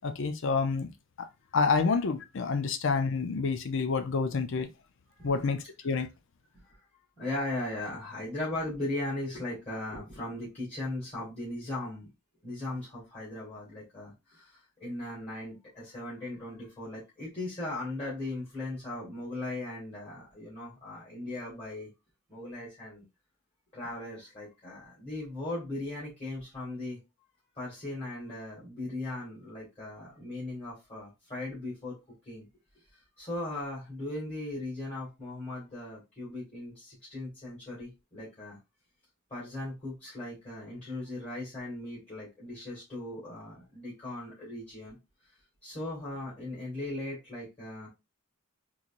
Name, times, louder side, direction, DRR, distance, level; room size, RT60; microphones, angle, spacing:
voice 1, 0.0-0.9 1.5-4.7 5.2-6.1, left 4 dB, 60° left, 0.5 m, -28 dB
voice 2, 7.2-12.1 12.4-21.9 22.3-23.0 23.7-27.0 27.6-32.0 32.2-32.5 33.2-38.6 39.3-45.0 45.6-47.9, left 2 dB, 30° left, 1.8 m, -38 dB
3.9 x 3.0 x 2.5 m
head